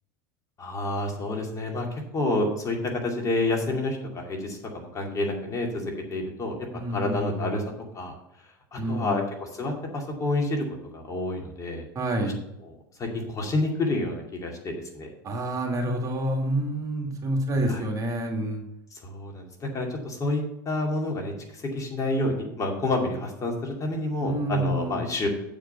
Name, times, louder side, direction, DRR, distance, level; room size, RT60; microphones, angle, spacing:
voice 1, 0.6-1.9 2.1-6.6 6.9-7.6 7.9-8.1 8.7-10.6 10.9-11.8 12.2-12.3 13.0-15.1 17.7-17.8 18.9-25.3, left 2 dB, 30° left, 1 dB, 2.4 m, -29 dB
voice 2, 6.7-7.6 8.8-9.2 12.0-12.4 15.2-18.6 24.2-25.0, right 1 dB, 30° right, 1 dB, 2.1 m, -28 dB
8.0 x 5.0 x 6.9 m, 0.86 s
hypercardioid pair, 100°, 11 cm